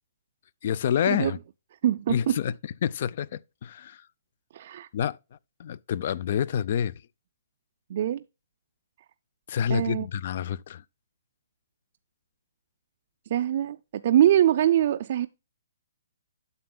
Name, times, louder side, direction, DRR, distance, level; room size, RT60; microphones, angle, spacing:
voice 1, 0.6-1.4 2.1-2.5 2.8-4.0 4.9-5.2 5.6-7.0 9.5-10.8, left 8 dB, 50° left, 0.4 m, -28 dB
voice 2, 1.8-2.4 4.5-4.9 7.9-8.2 9.7-10.1 13.3-15.3, right 11 dB, 45° right, 0.4 m, -23 dB
9.5 x 6.8 x 2.2 m
hypercardioid pair, 155°, 0 cm